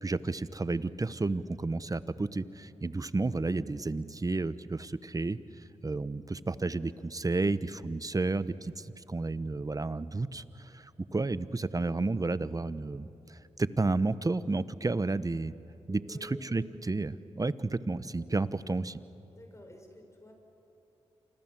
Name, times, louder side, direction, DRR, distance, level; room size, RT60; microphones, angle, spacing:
voice 1, 0.0-5.4 5.8-15.5 15.9-19.0, right 3 dB, 30° right, 15 dB, 1.0 m, -32 dB
voice 2, 15.9-16.7 19.3-20.3, left 1 dB, 25° left, 3 dB, 6.9 m, -50 dB
28.0 x 26.5 x 7.6 m, 2.8 s
supercardioid pair, 45°, 12 cm